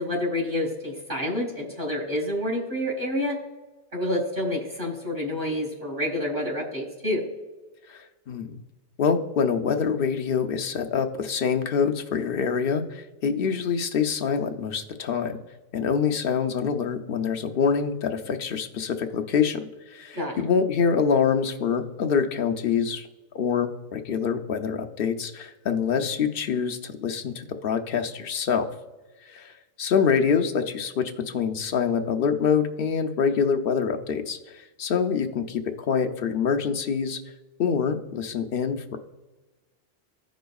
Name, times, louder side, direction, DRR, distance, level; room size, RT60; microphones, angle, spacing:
voice 1, 0.0-3.4 3.9-7.2 20.1-20.4, left 1 dB, 40° right, -2 dB, 1.9 m, -28 dB
voice 2, 7.9-8.6 9.0-15.4 15.7-23.1 23.3-28.7 29.3-29.5 29.8-37.2 37.6-39.0, left 6 dB, 55° left, 5 dB, 0.8 m, -25 dB
15.5 x 5.1 x 2.3 m, 1.2 s
omnidirectional pair, 1.2 m